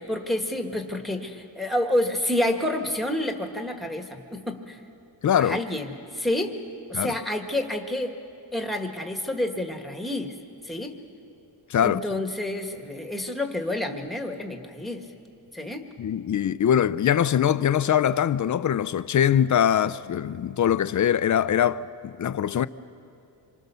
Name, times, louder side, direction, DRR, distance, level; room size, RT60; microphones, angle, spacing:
voice 1, 0.0-4.8 5.4-6.5 6.9-8.1 8.5-10.3 10.6-11.0 11.8-15.0 15.5-15.9, left 1 dB, ahead, 1.6 m, -29 dB
voice 2, 5.2-5.6 6.9-7.1 11.7-12.0 16.0-22.7, left 9 dB, 40° left, 0.5 m, -22 dB
26.5 x 23.5 x 6.9 m
wide cardioid pair, 165°, 46 cm